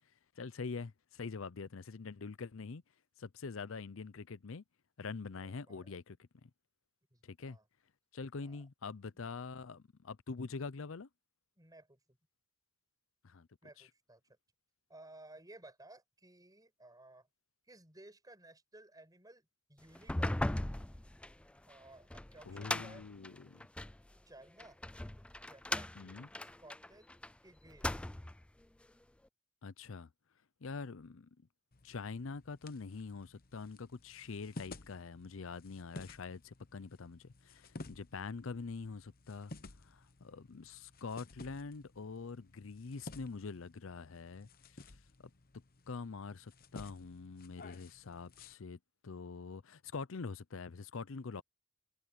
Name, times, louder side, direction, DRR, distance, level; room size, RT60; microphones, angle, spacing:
voice 1, 0.4-2.8 3.2-4.6 5.0-6.5 7.2-7.6 8.1-11.1 13.2-13.5 13.8-13.9 22.5-23.6 26.0-26.3 29.6-30.1 30.6-31.3 31.8-39.5 39.8-44.9 45.9-51.4, left 4 dB, 65° left, 0.6 m, -45 dB
voice 2, 5.3-5.9 7.1-7.6 8.4-8.6 9.1-9.3 11.6-12.0 13.6-14.2 14.9-17.3 17.7-20.6 21.7-23.1 24.3-24.8 25.4-25.9 26.4-27.1 27.4-28.1, right 2 dB, 20° right, 7.1 m, -57 dB
sound 1, 19.9-24.0 24.6-27.3 27.7-28.4, left 1 dB, 5° left, 0.3 m, -38 dB
sound 2, 31.7-48.5, left 2 dB, 45° left, 1.0 m, -54 dB
head